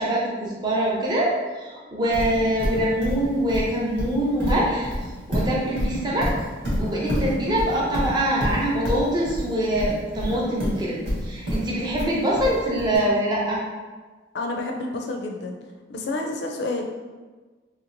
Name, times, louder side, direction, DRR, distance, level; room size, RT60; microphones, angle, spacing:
voice 1, 0.0-4.9 5.3-6.3 6.8-11.0 11.2-13.6, right 1 dB, 25° right, -5 dB, 0.6 m, -24 dB
Livestock farm animals working animals, 2.1-13.0, equal, 80° right, 1.4 m, -27 dB
voice 2, 14.3-15.6 15.9-16.8, left 2 dB, 60° left, 2 dB, 0.4 m, -29 dB
3.0 x 2.9 x 2.5 m, 1.3 s
head